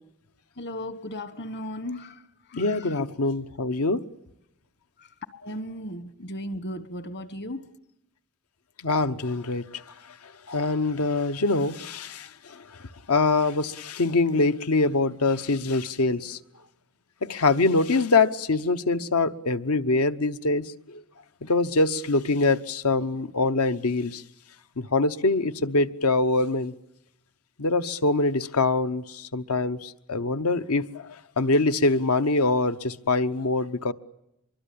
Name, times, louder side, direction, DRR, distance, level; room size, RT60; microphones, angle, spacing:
voice 1, 0.6-2.2 2.5-3.0 5.0-7.7, left 1 dB, 50° left, 1.4 m, -36 dB
voice 2, 2.5-4.0 8.8-9.8 10.5-12.6 13.1-16.4 17.2-21.0 21.4-24.2 24.8-26.7 27.6-30.9 31.4-33.9, left 3 dB, 85° left, 1.0 m, -24 dB
24.5 x 23.0 x 8.6 m
head